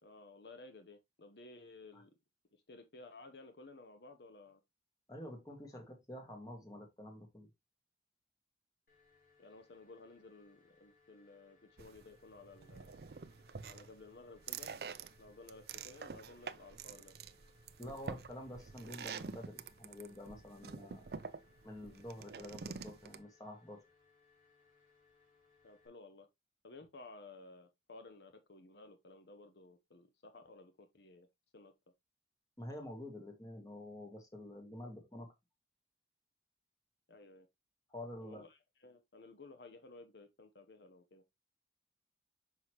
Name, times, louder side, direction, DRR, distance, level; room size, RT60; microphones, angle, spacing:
voice 1, 0.0-2.1 2.5-4.6 9.4-13.0 13.6-14.7 15.2-17.1 25.6-26.3 26.6-31.3 31.5-31.7 37.1-37.5 38.2-41.2, left 3 dB, 75° left, 0.8 m, -55 dB
voice 2, 5.1-7.5 17.8-21.1 21.6-23.8 32.6-35.3 37.9-38.4, left 1 dB, 20° left, 1.8 m, -48 dB
sound 1, 8.9-25.9, left 4 dB, 50° left, 2.7 m, -70 dB
sound 2, 11.8-23.2, right 5 dB, 60° right, 0.5 m, -47 dB
6.1 x 5.6 x 3.0 m
head